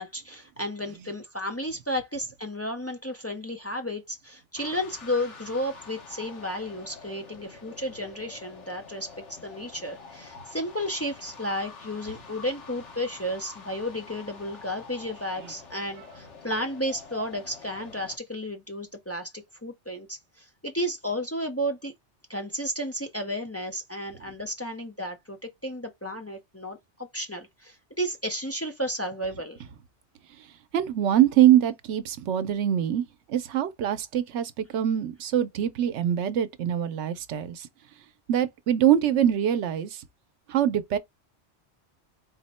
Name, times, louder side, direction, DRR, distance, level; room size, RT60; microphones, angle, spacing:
voice 1, 0.0-21.9 22.3-26.8 27.1-29.6, equal, 20° left, 0.4 m, -33 dB
sound 1, 4.6-18.2, left 4 dB, 85° left, 1.3 m, -47 dB
voice 2, 30.7-37.7 38.3-40.0 40.5-41.0, right 11 dB, 85° right, 0.9 m, -24 dB
4.2 x 2.1 x 4.1 m
omnidirectional pair, 1.2 m